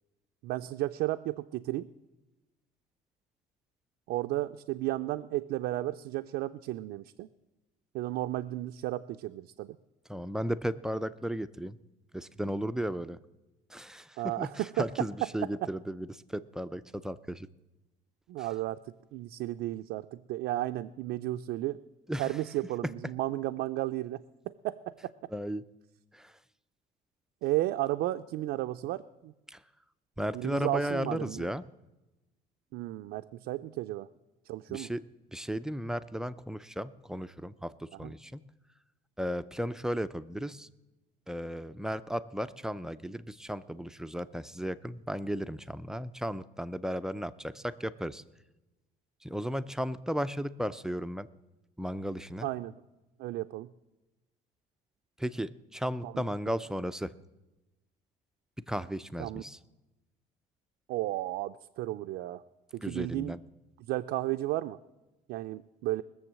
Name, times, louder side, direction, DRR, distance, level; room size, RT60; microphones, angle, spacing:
voice 1, 0.4-1.9 4.1-7.3 7.9-9.8 14.2-14.9 15.2-15.3 18.3-21.8 22.2-24.2 24.5-24.9 27.4-29.3 30.3-31.5 32.7-34.1 34.5-34.9 38.0-38.1 52.4-52.7 53.2-53.7 56.0-56.5 59.2-59.4 60.9-62.4 62.7-63.3 63.9-64.8 65.3-66.0, right 16 dB, 85° right, 6 dB, 0.4 m, -33 dB
voice 2, 10.1-11.8 12.1-13.2 13.7-17.5 18.4-18.5 22.1-22.3 25.3-25.7 26.1-26.3 29.5-29.6 30.2-31.6 34.7-35.0 35.3-38.4 39.2-40.7 41.3-48.2 49.2-51.3 51.8-52.5 55.2-57.1 58.7-59.6 62.8-63.4, equal, 5° right, 12 dB, 0.4 m, -35 dB
20.0 x 7.1 x 7.4 m, 1.0 s
cardioid pair, 130°, 17 cm